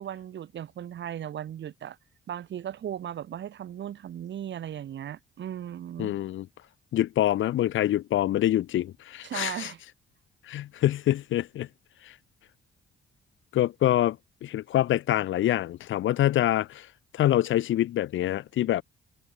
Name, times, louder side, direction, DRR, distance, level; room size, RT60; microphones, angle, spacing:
voice 1, 0.0-2.0 2.3-6.1 9.2-9.8, right 10 dB, 65° right, 4.7 m, -37 dB
voice 2, 6.0-6.5 6.9-9.7 10.5-11.7 13.5-14.2 14.4-16.9 17.1-18.8, left 13 dB, 80° left, 3.4 m, -25 dB
cardioid pair, 90°, 20 cm